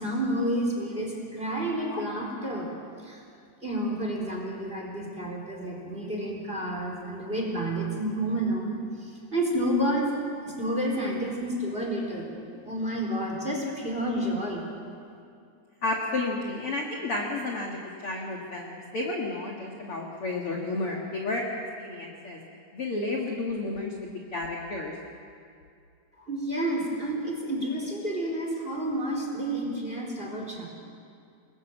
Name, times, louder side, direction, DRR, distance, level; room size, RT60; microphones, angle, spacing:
voice 1, 0.0-2.7 3.0-3.2 3.6-12.3 12.6-14.6 26.2-30.7, right 1 dB, 15° right, 0 dB, 3.7 m, -30 dB
voice 2, 15.8-21.4 21.8-22.4 22.7-25.0, left 2 dB, 45° left, 0 dB, 2.0 m, -32 dB
29.0 x 21.0 x 7.4 m, 2.5 s
omnidirectional pair, 5.1 m